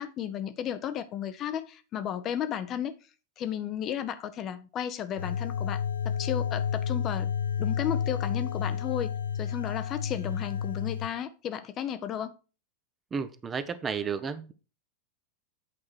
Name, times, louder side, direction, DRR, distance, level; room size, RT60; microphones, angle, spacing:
voice 1, 0.0-2.9 3.4-7.3 7.6-9.1 9.4-12.3, left 9 dB, 30° left, 0.8 m, -34 dB
sound 1, 5.2-11.1, left 8 dB, 70° left, 0.5 m, -31 dB
voice 2, 13.1-14.5, right 6 dB, 20° right, 0.8 m, -32 dB
8.7 x 4.8 x 4.6 m
figure-of-eight pair, 90°, 0 cm